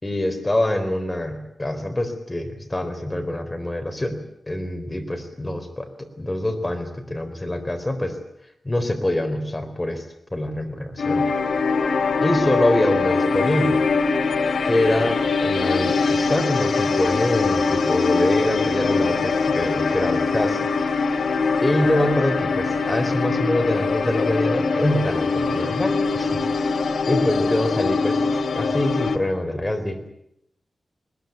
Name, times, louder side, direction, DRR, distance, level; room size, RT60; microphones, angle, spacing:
voice 1, 0.0-8.2 8.6-10.0 10.3-11.3 12.2-13.8 14.6-20.7 21.6-26.8 27.1-28.2 28.5-30.1, left 1 dB, 20° left, 6 dB, 4.2 m, -25 dB
sound 1, 11.0-29.2, left 4 dB, 85° left, 2.2 m, -22 dB
21.0 x 21.0 x 9.3 m, 0.77 s
wide cardioid pair, 95°, 0 cm